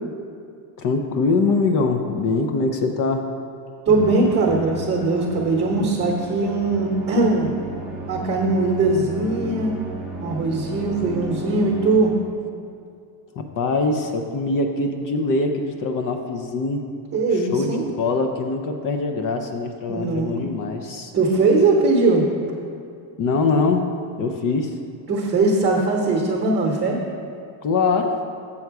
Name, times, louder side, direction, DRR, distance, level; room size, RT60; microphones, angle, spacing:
voice 1, 0.8-3.3 13.4-16.8 17.3-21.1 23.2-23.9 24.2-24.8 27.6-28.2, left 3 dB, 45° left, 5 dB, 0.6 m, -23 dB
Musical instrument, 3.9-12.4, right 1 dB, ahead, 0.8 m, -34 dB
voice 2, 3.9-7.5 8.1-9.8 10.2-12.1 17.1-17.9 19.9-20.3 21.1-22.2 25.1-27.0, right 3 dB, 30° right, -1 dB, 0.9 m, -20 dB
7.1 x 6.5 x 4.7 m, 2.4 s
cardioid pair, 145°, 46 cm